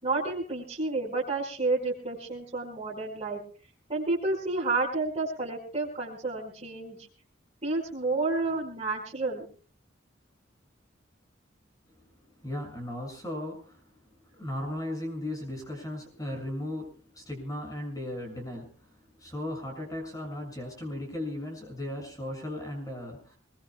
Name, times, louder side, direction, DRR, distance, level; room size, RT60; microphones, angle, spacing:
voice 1, 0.0-3.4 3.9-7.0 7.6-9.4, right 3 dB, 30° right, -7 dB, 5.2 m, -30 dB
voice 2, 12.4-13.8 14.3-18.9 19.2-23.4, left 1 dB, 20° left, 2 dB, 7.0 m, -36 dB
25.5 x 21.5 x 2.4 m, 0.40 s
head